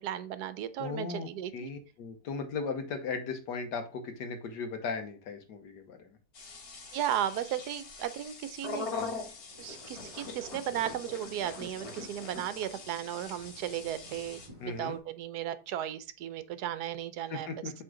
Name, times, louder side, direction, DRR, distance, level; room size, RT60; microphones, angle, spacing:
voice 1, 0.0-1.7 6.9-8.9 9.6-17.5, right 11 dB, 75° right, 13 dB, 1.1 m, -35 dB
voice 2, 0.8-6.2 8.9-9.1 14.6-15.0 17.3-17.7, left 4 dB, 75° left, 7 dB, 1.6 m, -37 dB
sound 1, 6.3-14.5, left 4 dB, 60° left, 1.8 m, -42 dB
sound 2, 9.5-15.0, right 1 dB, 20° right, 1.3 m, -57 dB
7.8 x 3.7 x 3.7 m, 0.33 s
omnidirectional pair, 1.8 m